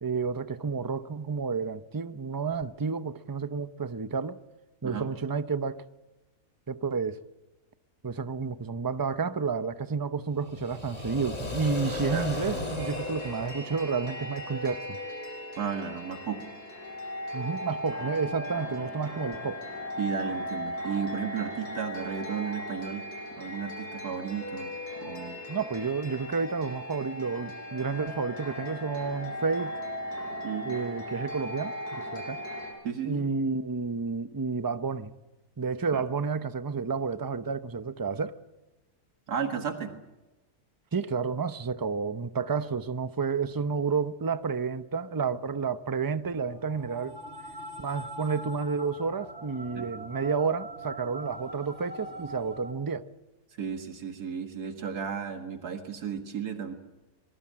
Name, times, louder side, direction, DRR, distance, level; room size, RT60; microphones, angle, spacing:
voice 1, 0.0-4.4 4.8-5.8 6.7-7.2 8.0-15.0 17.3-19.6 25.5-29.8 30.6-32.4 33.0-35.1 35.6-38.4 40.9-47.2 47.8-53.0, right 5 dB, 20° right, 0.6 m, -30 dB
sound 1, 10.4-14.4, left 1 dB, 25° left, 3.6 m, -35 dB
sound 2, 12.8-32.7, left 1 dB, 75° left, 8.0 m, -38 dB
voice 2, 15.6-16.4 20.0-23.1 23.4-24.7 25.0-25.4 30.4-30.7 32.8-33.3 35.9-36.0 39.3-39.9 49.8-49.9 53.6-56.7, right 7 dB, 80° right, 2.3 m, -34 dB
sound 3, 46.2-52.7, right 1 dB, 45° right, 3.1 m, -43 dB
24.0 x 21.5 x 7.6 m
omnidirectional pair, 1.6 m